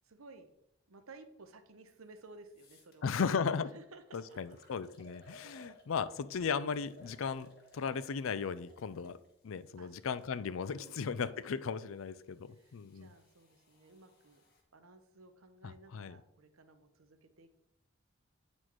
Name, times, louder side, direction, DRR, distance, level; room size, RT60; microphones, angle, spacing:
voice 1, 0.0-0.5 0.9-4.6 9.8-10.0 10.7-11.3 12.5-14.4 14.7-17.5, right 3 dB, 90° right, 8 dB, 0.9 m, -56 dB
sound 1, 2.0-2.1 2.5-3.0 3.6-3.7 4.1-6.2 6.7-10.4 11.2-14.6, equal, 45° left, 1.4 m, -62 dB
voice 2, 3.0-3.7 4.1-9.2 9.4-13.1 15.6-16.2, left 6 dB, 75° left, 15 dB, 0.4 m, -36 dB
8.7 x 4.4 x 4.5 m, 0.79 s
head